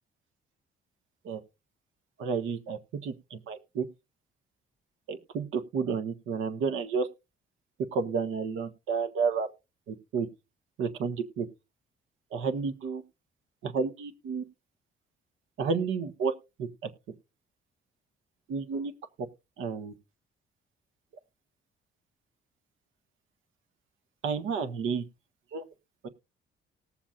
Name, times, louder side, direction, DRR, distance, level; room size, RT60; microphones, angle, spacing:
voice 1, 2.2-3.8 5.1-7.1 7.9-9.5 9.9-10.3 10.8-11.5 12.3-13.0 13.6-14.4 15.6-16.3 16.6-16.9 18.5-18.9 19.6-19.9 24.2-25.0 25.5-25.6 26.0-26.1, right 5 dB, 85° right, 7 dB, 1.4 m, -31 dB
19.5 x 7.2 x 2.5 m, 0.27 s
cardioid pair, 90°, 20 cm